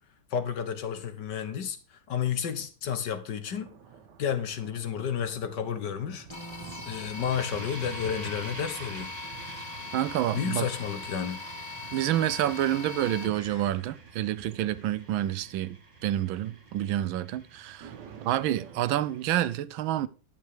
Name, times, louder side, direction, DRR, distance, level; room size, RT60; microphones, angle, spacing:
voice 1, 0.3-3.7 4.2-6.3 6.9-9.1 10.3-11.4, left 8 dB, 65° left, 1.7 m, -31 dB
sound 1, 3.5-18.9, right 6 dB, 60° right, 1.6 m, -51 dB
sound 2, 6.3-13.7, left 3 dB, 15° left, 1.7 m, -41 dB
sound 3, 7.3-19.5, right 3 dB, 40° right, 2.2 m, -47 dB
voice 2, 9.9-10.6 11.9-15.8 16.0-17.9 18.2-20.1, right 12 dB, 85° right, 1.4 m, -28 dB
11.0 x 6.8 x 4.9 m
omnidirectional pair, 2.2 m